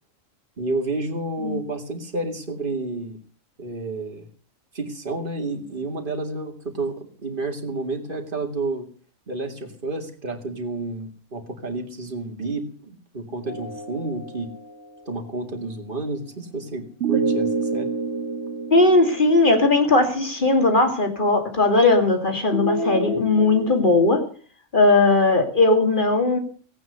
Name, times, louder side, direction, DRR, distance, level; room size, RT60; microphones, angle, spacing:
voice 1, 0.6-3.2 3.6-4.3 4.7-8.9 9.3-14.5 15.1-17.9, right 2 dB, 40° right, 4 dB, 2.5 m, -30 dB
sound 1, 13.4-15.0 17.0-20.2 22.5-23.9, right 3 dB, 65° right, 2.2 m, -28 dB
voice 2, 18.7-24.2 24.7-26.4, left 2 dB, 40° left, 5 dB, 2.8 m, -18 dB
17.0 x 9.4 x 6.8 m, 0.42 s
omnidirectional pair, 1.3 m